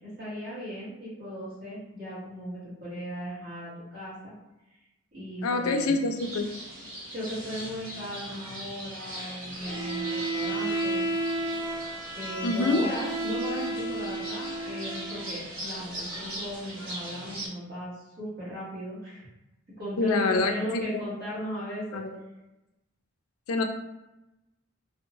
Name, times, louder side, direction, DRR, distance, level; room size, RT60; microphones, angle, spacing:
voice 1, 0.0-4.3 5.1-5.9 7.1-11.0 12.2-19.3 19.8-22.0, equal, 50° right, -12 dB, 1.1 m, -37 dB
voice 2, 5.4-6.5 12.4-12.9 20.0-20.8 21.9-22.2 23.5-23.6, left 3 dB, 80° left, 5 dB, 0.4 m, -26 dB
sound 1, 6.2-17.5, right 1 dB, 75° right, 0.8 m, -40 dB
Bowed string instrument, 9.6-15.3, right 2 dB, 5° left, 0.6 m, -32 dB
2.6 x 2.1 x 2.8 m, 0.98 s
head